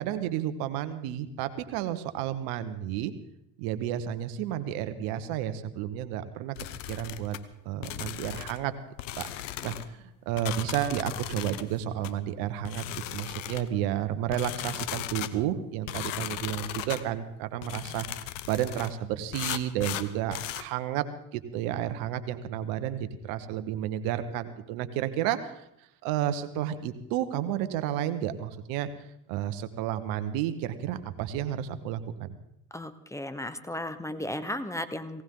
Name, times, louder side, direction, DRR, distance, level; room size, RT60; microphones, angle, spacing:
voice 1, 0.0-3.1 3.6-6.5 6.9-7.3 7.6-8.7 9.2-9.3 9.6-12.8 13.1-18.1 18.5-21.1 21.3-25.5 26.0-28.9 29.3-32.3, right 11 dB, 70° right, 10 dB, 1.5 m, -31 dB
sound 1, 6.6-7.4 7.8-8.6 9.0-9.9 10.4-11.7 12.0-12.2 12.6-13.7 14.3-15.3 15.9-17.0 17.6-18.9 19.3-20.7, left 14 dB, 85° left, 1.0 m, -37 dB
voice 2, 32.7-35.2, left 1 dB, 10° left, 11 dB, 1.2 m, -35 dB
18.5 x 18.0 x 3.9 m, 0.79 s
hypercardioid pair, 80°, 37 cm